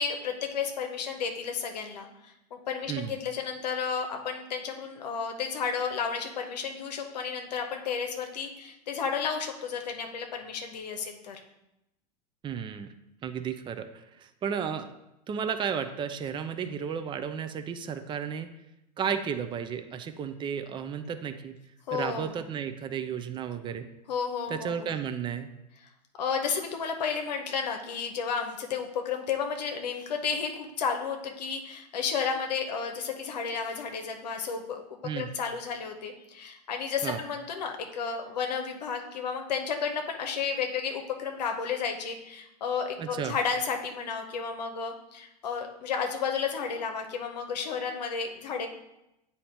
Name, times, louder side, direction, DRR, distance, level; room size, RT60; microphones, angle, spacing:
voice 1, 0.0-11.4 21.9-22.4 24.1-24.9 26.2-48.7, left 6 dB, 80° left, 4 dB, 0.8 m, -32 dB
voice 2, 12.4-12.9 13.2-14.9 15.3-18.5 19.0-21.5 21.9-23.9 24.5-25.5 35.0-35.3 37.0-37.2 43.0-43.3, right 7 dB, 25° right, 9 dB, 0.5 m, -33 dB
8.4 x 2.8 x 4.4 m, 0.89 s
hypercardioid pair, 105°, 21 cm